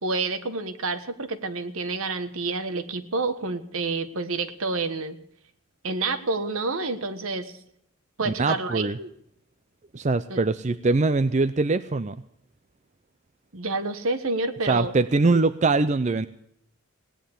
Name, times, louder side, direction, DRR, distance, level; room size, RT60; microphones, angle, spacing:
voice 1, 0.0-5.2 5.8-7.5 8.2-9.1 10.3-10.4 13.5-14.9, right 3 dB, 70° right, 10 dB, 1.4 m, -28 dB
voice 2, 8.3-9.0 9.9-12.2 14.7-16.3, right 3 dB, 30° right, 12 dB, 0.5 m, -22 dB
17.5 x 10.5 x 6.9 m, 0.72 s
head